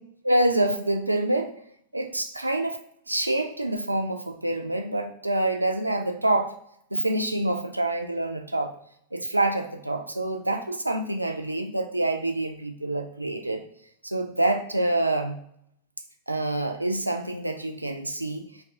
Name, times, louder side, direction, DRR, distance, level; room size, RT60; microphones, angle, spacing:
voice 1, 0.2-1.5 1.9-2.8 3.1-6.5 6.9-8.7 9.1-13.6 14.0-15.4 16.3-18.5, right 1 dB, 85° right, 5 dB, 0.3 m, -26 dB
2.6 x 2.4 x 3.5 m, 0.69 s
figure-of-eight pair, 90°, 0 cm